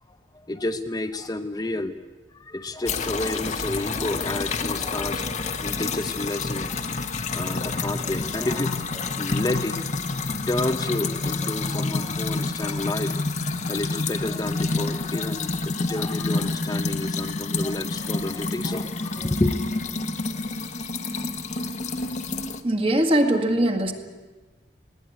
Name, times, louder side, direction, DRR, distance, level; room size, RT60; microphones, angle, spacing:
voice 1, 0.1-1.9 2.3-7.0 7.3-9.8 10.5-13.1 13.7-19.6, left 2 dB, 20° left, 7 dB, 0.7 m, -30 dB
sound 1, 2.8-22.6, left 3 dB, 40° left, 1.2 m, -28 dB
voice 2, 22.6-23.9, right 1 dB, 30° right, 5 dB, 2.0 m, -21 dB
20.0 x 17.5 x 9.6 m, 1.3 s
head